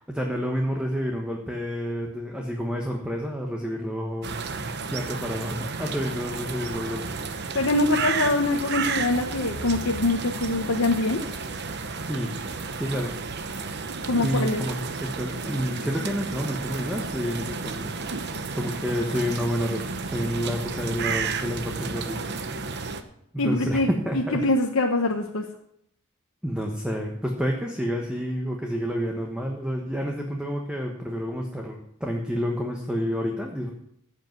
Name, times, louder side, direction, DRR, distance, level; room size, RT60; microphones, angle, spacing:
voice 1, 0.0-4.3 4.9-7.2 12.0-12.3 12.8-13.1 14.2-18.0 18.5-22.2 23.3-24.4 26.4-33.7, equal, 5° right, 1 dB, 1.3 m, -29 dB
sound 1, 4.2-23.0, right 4 dB, 55° right, 1.0 m, -32 dB
voice 2, 7.5-11.2 14.1-14.6 23.4-23.9 24.1-25.5, left 2 dB, 90° left, 1 dB, 1.1 m, -24 dB
14.5 x 8.1 x 6.0 m, 0.73 s
head